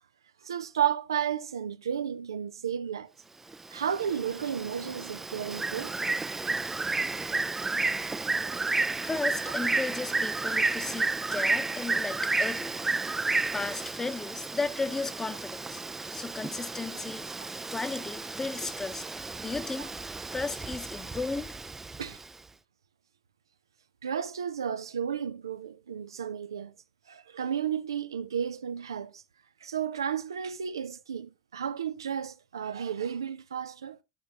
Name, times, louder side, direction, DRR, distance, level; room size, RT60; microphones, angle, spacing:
voice 1, 0.4-3.1 3.7-6.0 8.4-8.6 22.0-22.2 24.0-26.7 27.1-29.2 29.6-34.0, right 8 dB, 85° right, 0.4 m, -33 dB
Bird, 3.5-22.3, right 3 dB, 15° right, 0.3 m, -32 dB
voice 2, 9.0-12.7 13.5-15.8 16.1-17.3 17.7-19.0 19.4-19.9 20.3-21.6, left 3 dB, 20° left, 0.9 m, -34 dB
12.0 x 5.1 x 2.8 m
hypercardioid pair, 70°, 2 cm